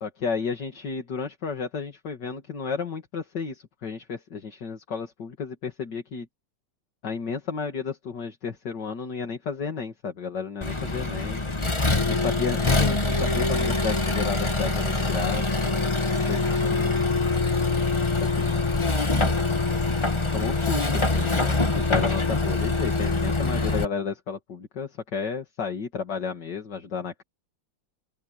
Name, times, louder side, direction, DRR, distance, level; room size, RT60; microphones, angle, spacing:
voice 1, 0.0-6.3 7.0-11.4 12.0-15.9 16.3-17.1 18.2-19.3 20.3-27.2, left 5 dB, 60° left, 2.8 m, -32 dB
Accelerating revving vroom, 10.6-23.8, left 3 dB, 15° left, 1.3 m, -24 dB
open air
omnidirectional pair, 2.1 m